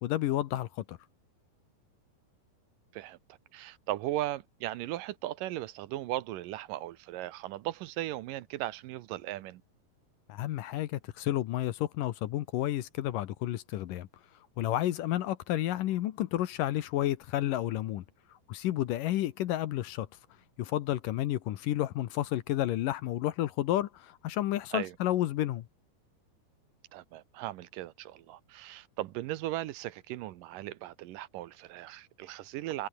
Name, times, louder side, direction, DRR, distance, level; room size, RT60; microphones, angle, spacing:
voice 1, 0.0-1.0 10.3-14.1 14.6-18.0 18.5-20.1 20.6-25.6, left 14 dB, 70° left, 2.3 m, -31 dB
voice 2, 3.5-9.6 24.7-25.0 26.9-32.9, right 15 dB, 75° right, 2.2 m, -37 dB
omnidirectional pair, 4.6 m